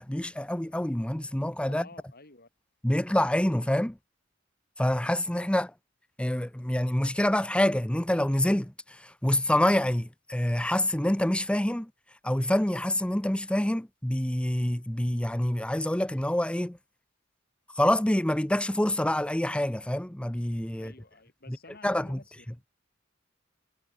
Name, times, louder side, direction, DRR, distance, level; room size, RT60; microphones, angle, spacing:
voice 1, 0.0-1.8 2.8-4.0 4.8-5.7 6.2-11.9 12.2-16.8 17.8-20.9 21.8-22.2, left 1 dB, 5° left, 0.6 m, -26 dB
voice 2, 1.7-2.5 20.7-22.3, left 3 dB, 50° left, 7.3 m, -51 dB
head